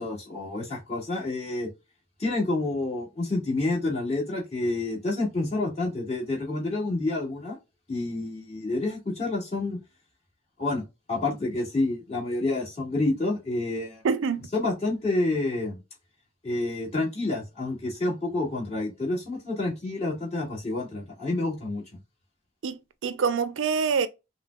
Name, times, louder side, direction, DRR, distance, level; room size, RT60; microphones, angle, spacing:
voice 1, 0.0-1.7 2.2-7.6 7.9-9.8 10.6-10.8 11.1-14.0 14.5-15.8 16.4-21.8, left 2 dB, 35° left, 1.9 m, -28 dB
voice 2, 14.0-14.5 22.6-24.1, right 5 dB, 85° right, 0.4 m, -26 dB
5.5 x 2.2 x 2.3 m
head